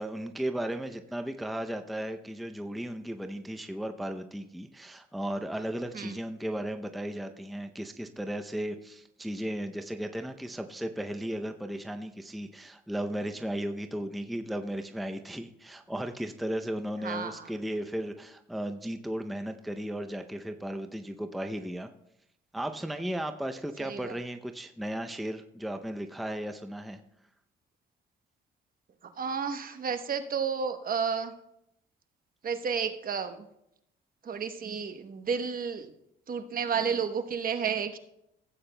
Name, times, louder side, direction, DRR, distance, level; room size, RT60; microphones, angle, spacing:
voice 1, 0.0-21.9 22.5-27.0, right 1 dB, ahead, 6 dB, 0.5 m, -35 dB
voice 2, 29.2-31.3 32.4-33.4 34.3-35.9 36.3-38.0, right 6 dB, 45° right, 8 dB, 0.9 m, -31 dB
16.0 x 8.6 x 2.2 m, 0.80 s
cardioid pair, 90°, 20 cm